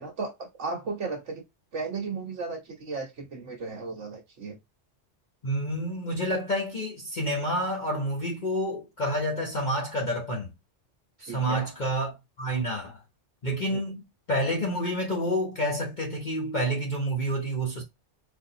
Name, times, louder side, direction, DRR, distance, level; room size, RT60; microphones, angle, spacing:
voice 1, 0.0-1.4 1.7-4.6 11.3-11.7 13.7-13.8, right 4 dB, 70° right, 1.5 m, -35 dB
voice 2, 5.4-10.5 11.2-13.0 13.4-14.0 14.3-17.8, equal, 40° left, 1.0 m, -29 dB
4.2 x 2.7 x 2.7 m
omnidirectional pair, 1.3 m